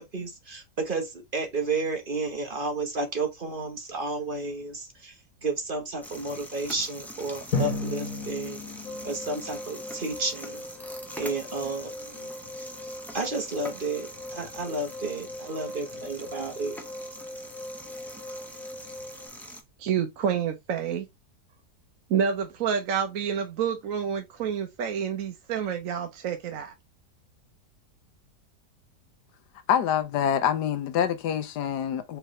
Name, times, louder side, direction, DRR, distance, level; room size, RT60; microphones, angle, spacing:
voice 1, 0.0-8.6 9.0-10.7 11.2-12.3 13.1-16.8, right 3 dB, 35° right, 1.1 m, -32 dB
sound 1, 6.0-19.6, equal, ahead, 0.6 m, -44 dB
Drum, 7.5-10.2, left 2 dB, 55° left, 1.5 m, -33 dB
sound 2, 8.8-19.3, left 1 dB, 30° left, 0.9 m, -41 dB
voice 2, 19.8-21.1 22.1-26.7, right 7 dB, 60° right, 1.0 m, -28 dB
voice 3, 29.7-32.2, left 9 dB, 80° left, 1.3 m, -26 dB
4.7 x 3.3 x 3.0 m
omnidirectional pair, 1.7 m